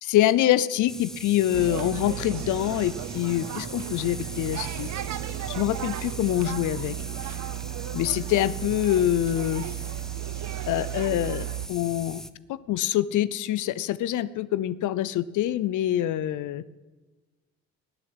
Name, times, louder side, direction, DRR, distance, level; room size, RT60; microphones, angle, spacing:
voice 1, 0.0-4.9 5.5-6.9 7.9-9.6 10.7-12.2 12.5-16.6, left 13 dB, 80° left, 17 dB, 0.6 m, -25 dB
sound 1, 0.9-12.3, equal, ahead, 0.8 m, -41 dB
sound 2, 1.5-11.7, right 14 dB, 65° right, 0.8 m, -34 dB
19.5 x 6.6 x 9.7 m, 1.2 s
cardioid pair, 90°, 30 cm